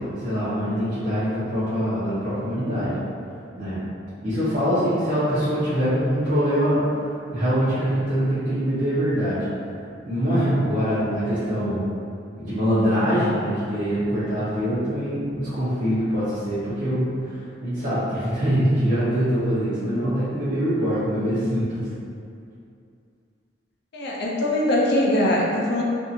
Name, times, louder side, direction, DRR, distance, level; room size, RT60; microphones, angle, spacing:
voice 1, 0.0-2.9 3.6-3.8 4.2-9.4 10.0-11.8 12.3-21.9, equal, 45° right, -14 dB, 0.8 m, -24 dB
voice 2, 23.9-25.8, left 1 dB, 60° left, -3 dB, 0.5 m, -22 dB
2.7 x 2.6 x 2.5 m, 2.5 s
head